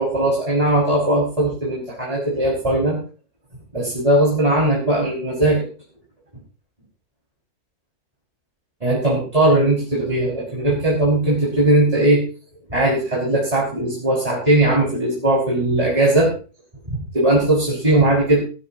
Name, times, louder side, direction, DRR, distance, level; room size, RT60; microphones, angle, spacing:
voice 1, 0.0-3.0 3.7-5.6 8.8-12.2 12.7-16.3 16.9-18.4, right 1 dB, 20° right, -6 dB, 6.2 m, -19 dB
17.5 x 16.5 x 3.0 m, 0.37 s
omnidirectional pair, 1.6 m